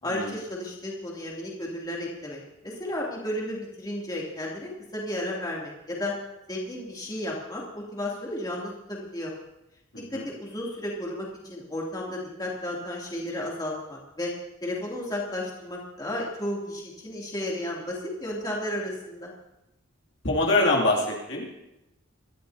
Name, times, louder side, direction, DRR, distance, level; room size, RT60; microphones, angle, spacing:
voice 1, 0.0-6.1 6.5-9.3 10.1-14.3 14.6-19.3, left 1 dB, 20° left, -4 dB, 2.8 m, -33 dB
voice 2, 20.2-21.5, left 2 dB, 60° left, -2 dB, 2.7 m, -23 dB
24.5 x 13.5 x 2.8 m, 0.89 s
head